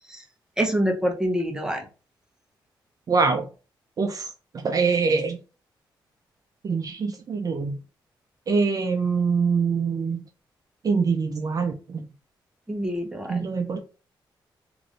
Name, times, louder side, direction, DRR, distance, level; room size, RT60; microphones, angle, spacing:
voice 1, 0.6-1.9 12.7-13.5, equal, 10° right, 0.7 m, -26 dB
voice 2, 3.1-3.4 4.0-4.3 4.5-5.4 6.6-7.8 8.5-10.2 10.8-12.0 13.3-13.8, right 5 dB, 45° right, 0.4 m, -24 dB
3.0 x 2.6 x 2.5 m
cardioid pair, 85°, 9 cm